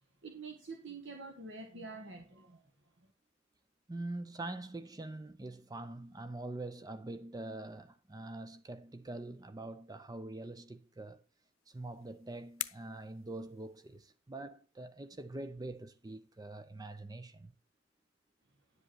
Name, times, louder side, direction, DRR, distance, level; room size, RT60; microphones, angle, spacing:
voice 1, 0.2-2.6 3.0-3.1, right 3 dB, 60° right, 1.5 m, -47 dB
voice 2, 3.9-11.2 11.7-17.5, right 2 dB, 20° right, 0.5 m, -44 dB
sound 1, 11.5-14.2, left 16 dB, 75° left, 0.7 m, -47 dB
11.0 x 7.8 x 4.6 m
head